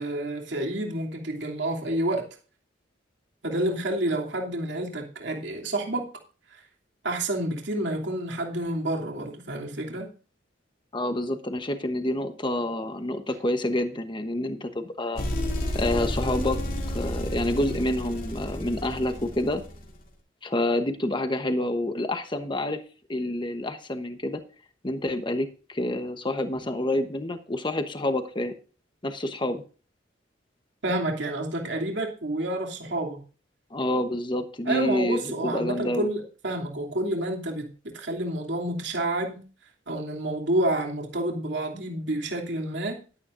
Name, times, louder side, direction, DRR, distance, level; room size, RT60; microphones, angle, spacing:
voice 1, 0.0-2.3 3.4-6.1 6.5-6.6 7.0-10.1 30.8-33.2 34.7-39.4 39.9-43.0, right 1 dB, 65° right, 2.9 m, -29 dB
voice 2, 10.9-15.2 15.7-16.6 16.9-19.6 20.4-22.8 23.1-24.4 24.8-28.5 29.0-29.6 33.7-36.1, left 1 dB, 25° left, 1.1 m, -28 dB
sound 1, 15.2-20.0, equal, 45° left, 2.6 m, -31 dB
13.0 x 12.0 x 2.6 m
head